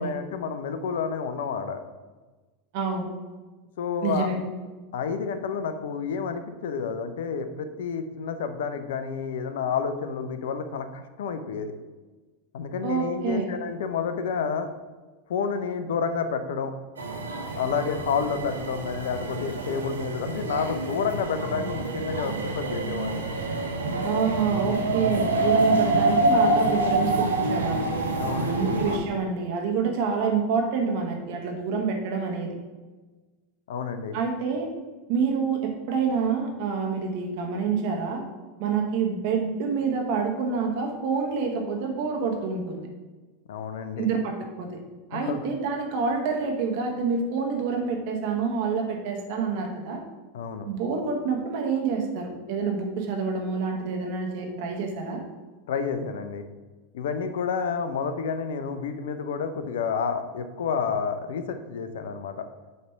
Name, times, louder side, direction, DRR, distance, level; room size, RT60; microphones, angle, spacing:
voice 1, 0.0-1.8 3.8-4.3 4.9-11.8 12.5-14.7 15.3-16.7 17.6-23.2 28.2-28.7 33.7-34.2 43.5-44.1 45.1-45.4 50.3-50.7 55.7-56.4 56.9-62.5, left 6 dB, 65° left, 9 dB, 0.5 m, -30 dB
voice 2, 2.7-3.1 4.0-4.4 12.8-13.5 24.0-27.8 28.5-32.5 34.1-34.7 35.1-38.2 38.6-42.9 44.0-44.8 45.1-50.0 50.6-55.2, right 5 dB, 55° right, 2 dB, 1.2 m, -27 dB
sound 1, 17.0-29.0, right 2 dB, 80° right, 0.7 m, -26 dB
6.5 x 3.3 x 5.7 m, 1.3 s
figure-of-eight pair, 85°, 0 cm